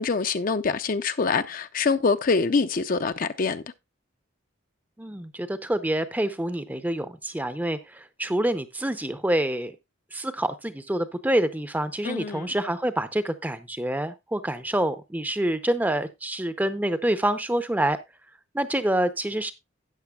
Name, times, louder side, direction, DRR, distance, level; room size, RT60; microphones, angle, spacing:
voice 1, 0.0-3.6 12.0-12.5, left 4 dB, 40° left, 0.5 m, -25 dB
voice 2, 5.0-9.7 10.1-18.0 18.5-19.5, right 1 dB, 10° right, 0.6 m, -27 dB
13.0 x 9.1 x 2.3 m
head